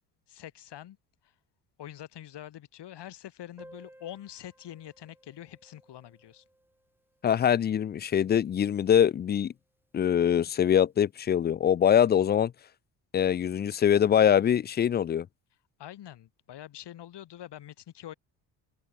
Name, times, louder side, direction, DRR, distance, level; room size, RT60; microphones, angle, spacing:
voice 1, 0.3-1.0 1.2-1.3 1.8-6.4 15.8-18.1, left 12 dB, 60° left, 5.4 m, -45 dB
Piano, 3.6-8.9 9.2-9.3 9.5-9.7 10.0-10.1 10.9-11.0, right 1 dB, 5° right, 3.2 m, -58 dB
voice 2, 7.2-9.5 9.9-12.5 13.1-15.3, left 9 dB, 25° left, 0.4 m, -23 dB
supercardioid pair, 70°, 46 cm